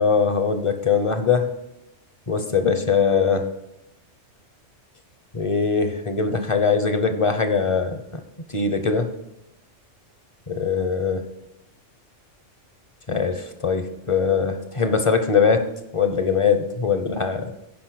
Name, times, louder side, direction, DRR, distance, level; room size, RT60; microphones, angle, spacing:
voice 1, 0.0-1.5 2.3-3.5 5.3-8.2 8.5-9.1 10.5-11.2 13.1-15.7 15.9-17.5, left 5 dB, 30° left, 8 dB, 0.7 m, -21 dB
10.5 x 5.3 x 6.1 m, 0.89 s
omnidirectional pair, 1.3 m